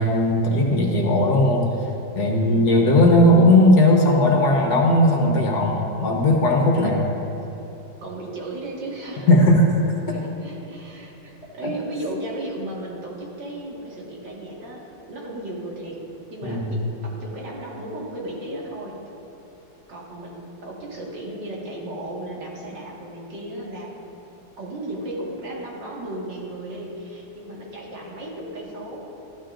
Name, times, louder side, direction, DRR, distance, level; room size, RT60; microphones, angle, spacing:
voice 1, 0.0-1.6 2.2-7.1 9.3-9.7 16.4-16.7, left 1 dB, 55° left, 0 dB, 1.6 m, -17 dB
voice 2, 1.1-1.5 2.4-2.9 6.7-7.1 8.0-9.3 10.1-19.0 19.9-23.9 24.6-29.1, right 1 dB, 60° right, -4 dB, 2.4 m, -35 dB
14.0 x 12.0 x 2.5 m, 2.9 s
omnidirectional pair, 2.2 m